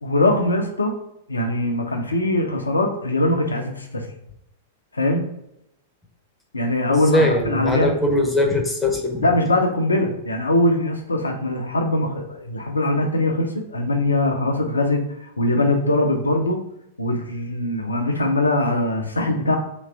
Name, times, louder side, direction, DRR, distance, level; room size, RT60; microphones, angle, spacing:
voice 1, 0.0-0.9 1.3-4.0 4.9-5.2 6.5-7.9 9.2-15.0 15.4-16.6 17.0-19.6, left 1 dB, 85° left, 3 dB, 0.7 m, -21 dB
voice 2, 7.1-9.3, left 1 dB, 5° left, 2 dB, 1.0 m, -21 dB
3.2 x 3.1 x 4.7 m, 0.81 s
figure-of-eight pair, 100°, 0 cm